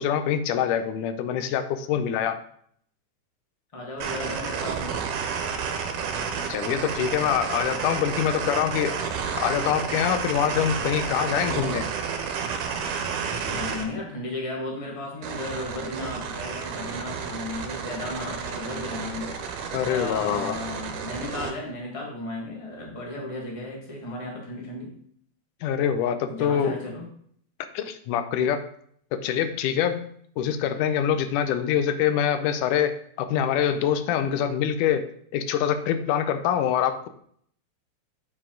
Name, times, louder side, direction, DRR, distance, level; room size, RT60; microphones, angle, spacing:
voice 1, 0.0-2.4 6.5-9.0 9.4-11.9 19.7-20.6 25.6-26.8 27.7-28.6 29.1-30.1 30.4-37.1, left 9 dB, 90° left, 10 dB, 2.1 m, -25 dB
voice 2, 3.7-5.0 8.1-8.2 13.5-19.3 19.8-24.9 26.3-27.1, left 2 dB, 25° left, -2 dB, 0.6 m, -35 dB
sound 1, 4.0-13.9 15.2-21.5, right 6 dB, 80° right, 2.4 m, -31 dB
8.3 x 4.9 x 3.8 m, 0.63 s
omnidirectional pair, 3.6 m